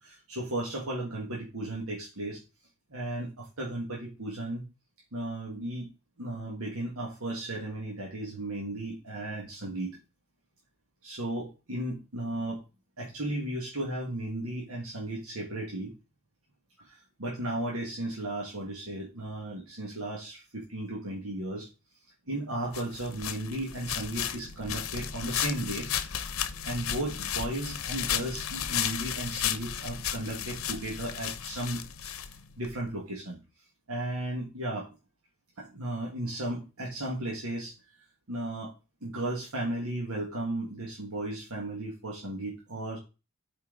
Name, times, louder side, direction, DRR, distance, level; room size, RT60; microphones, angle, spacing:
voice 1, 0.0-2.4 2.9-4.6 5.1-5.9 6.2-10.0 11.0-12.6 13.0-15.9 16.8-21.7 22.3-25.9 26.6-32.1 32.6-33.4 33.9-34.9 35.6-37.7 38.3-38.7 39.0-43.0, right 1 dB, 85° right, -2 dB, 1.7 m, -35 dB
sound 1, 22.7-32.7, left 9 dB, 70° left, 0.7 m, -34 dB
8.7 x 4.4 x 3.9 m, 0.29 s
head